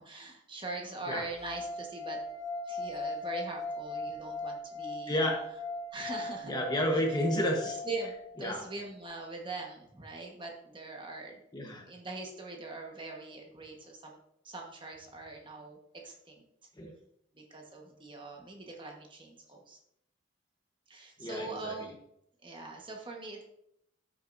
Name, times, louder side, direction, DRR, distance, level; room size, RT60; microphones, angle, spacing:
voice 1, 0.0-2.2 2.6-5.3 5.9-6.5 6.9-7.0 7.8-8.1 8.4-11.4 11.9-14.2 14.4-16.4 17.3-19.8 20.9-22.0 22.4-23.4, right 3 dB, 25° right, 0 dB, 1.3 m, -42 dB
sound 1, 1.3-8.5, left 2 dB, 85° left, 1.7 m, -39 dB
voice 2, 5.1-5.4 6.4-7.8 8.4-8.6 11.5-11.9 16.8-16.9 21.2-21.7, equal, 20° left, 1 dB, 1.1 m, -31 dB
13.5 x 6.4 x 2.7 m, 0.77 s
head